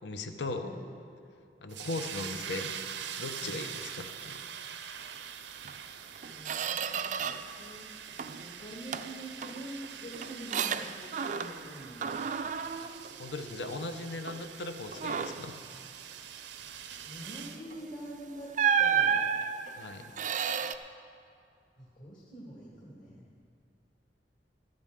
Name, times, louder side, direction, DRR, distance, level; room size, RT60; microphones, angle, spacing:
voice 1, 0.0-0.7 1.6-2.8 3.2-4.4 12.8-12.9 13.2-15.6 19.8-20.1, left 2 dB, 75° left, 7 dB, 0.8 m, -38 dB
sound 1, 1.7-17.6, right 8 dB, 80° right, 0.6 m, -44 dB
Squeak, 5.6-5.8 6.2-7.6 7.9-8.5 8.9-11.7 12.0-13.8 14.3-14.5 14.9-15.5 17.7-17.8 18.5-20.8, right 7 dB, 45° right, 0.4 m, -32 dB
voice 2, 6.3-7.9 8.4-12.3 17.0-18.5 18.8-19.2 21.8-23.2, right 1 dB, 50° left, -5 dB, 1.9 m, -45 dB
14.0 x 13.0 x 3.7 m, 2.4 s
head